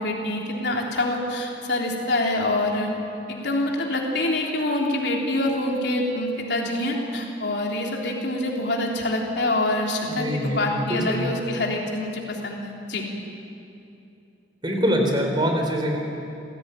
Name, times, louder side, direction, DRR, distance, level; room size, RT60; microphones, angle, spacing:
voice 1, 0.0-2.9 3.3-13.1, left 1 dB, 70° left, -1 dB, 3.4 m, -26 dB
voice 2, 10.1-11.2 14.6-16.0, equal, 25° right, 3 dB, 3.5 m, -24 dB
27.0 x 16.5 x 9.1 m, 2.8 s
head